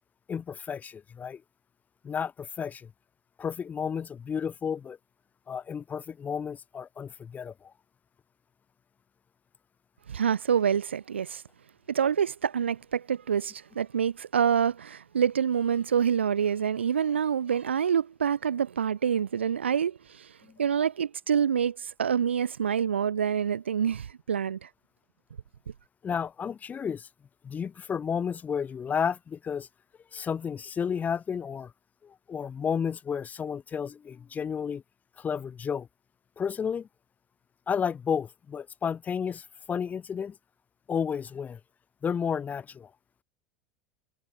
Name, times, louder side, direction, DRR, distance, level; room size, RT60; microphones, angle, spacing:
voice 1, 0.3-1.4 2.0-2.9 3.4-5.0 5.5-7.7 26.0-27.1 27.4-29.7 30.1-31.7 32.0-34.8 35.2-35.9 36.4-36.9 37.7-40.4 40.9-41.6 42.0-42.9, left 7 dB, 25° left, 4.0 m, -32 dB
voice 2, 10.1-11.4 11.9-20.3 20.6-24.7, right 8 dB, 75° right, 2.8 m, -27 dB
figure-of-eight pair, 80°, 6 cm